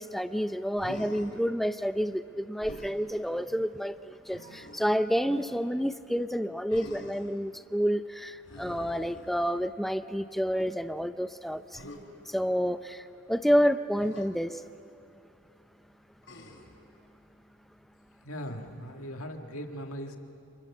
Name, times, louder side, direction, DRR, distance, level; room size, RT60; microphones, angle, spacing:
voice 1, 0.0-11.8 12.3-14.6, equal, ahead, 10 dB, 0.5 m, -29 dB
Human voice, 0.8-1.4 2.6-3.0 4.3-5.0 6.7-7.3 8.4-9.7 11.7-12.0 14.0-14.3 16.2-16.8 18.3-18.9, left 1 dB, 65° left, 4.4 m, -46 dB
voice 2, 18.2-20.2, equal, 90° left, 4 dB, 2.0 m, -39 dB
28.5 x 27.5 x 7.3 m, 2.7 s
head